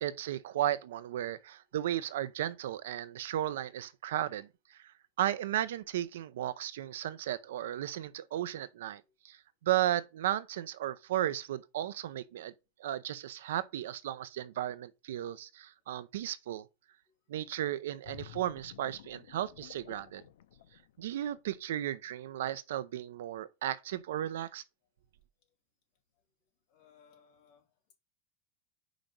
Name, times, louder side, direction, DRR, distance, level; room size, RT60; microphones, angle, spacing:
voice 1, 0.0-4.8 5.2-9.4 9.6-12.5 12.8-16.6 17.3-20.2 21.0-24.6, right 12 dB, 90° right, 0.7 m, -35 dB
sound 1, 18.0-21.6 22.1-22.3, left 12 dB, 80° left, 0.7 m, -52 dB
voice 2, 26.7-27.8, left 7 dB, 40° left, 2.8 m, -64 dB
5.3 x 5.1 x 6.0 m
supercardioid pair, 175°, 0 cm